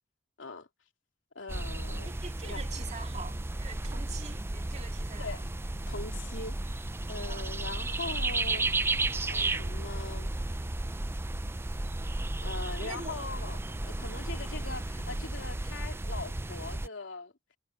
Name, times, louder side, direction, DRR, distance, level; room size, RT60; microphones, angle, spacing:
voice 1, 1.3-2.1 2.4-2.6 5.2-5.5 5.9-8.7 9.2-10.3 12.4-17.3, left 3 dB, 90° left, 2.9 m, -41 dB
sound 1, 1.5-16.9, right 2 dB, 15° right, 0.5 m, -33 dB
voice 2, 2.0-5.4 7.3-7.5 12.8-13.1, right 4 dB, 40° right, 2.2 m, -44 dB
head